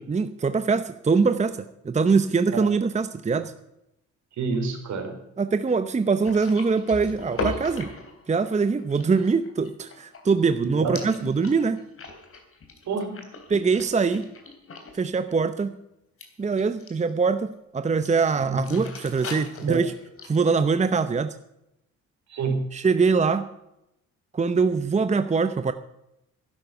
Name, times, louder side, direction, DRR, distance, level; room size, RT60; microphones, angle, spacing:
voice 1, 0.1-3.5 5.4-7.9 8.3-11.8 13.5-14.2 14.9-15.8 16.4-19.9 20.2-21.3 22.7-23.5 24.3-25.7, right 4 dB, 25° right, 10 dB, 0.8 m, -23 dB
voice 2, 4.4-5.1 10.6-10.9 12.9-13.2 18.5-18.8 19.7-19.8 22.3-22.7, right 4 dB, 65° right, 4 dB, 4.1 m, -27 dB
sound 1, 6.2-10.6 10.9-15.0 15.3-15.6 16.2-17.1 18.0-18.2 18.5-20.4, left 3 dB, 45° left, 3.4 m, -38 dB
12.0 x 11.0 x 6.6 m, 0.83 s
cardioid pair, 90°, 30 cm